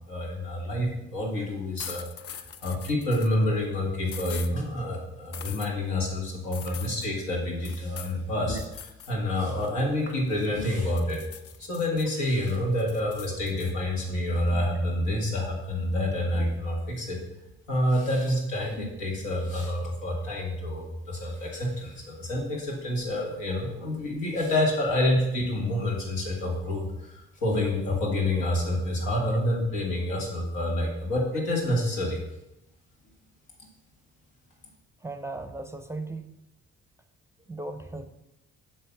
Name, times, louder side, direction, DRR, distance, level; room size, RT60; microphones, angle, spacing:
voice 1, 0.1-2.1 2.3-11.3 11.6-17.2 17.7-32.2, left 1 dB, 85° left, -1 dB, 2.0 m, -28 dB
sound 1, 1.8-3.3 4.1-4.5 5.3-5.7 6.5-7.1 7.6-8.2 8.6-9.1 9.5-10.6 11.0-12.0 12.5-13.7, left 8 dB, 50° left, 0.6 m, -42 dB
voice 2, 35.0-36.3 37.5-38.2, right 2 dB, 10° right, 8 dB, 0.5 m, -37 dB
7.6 x 3.2 x 5.9 m, 0.90 s
supercardioid pair, 70°, 31 cm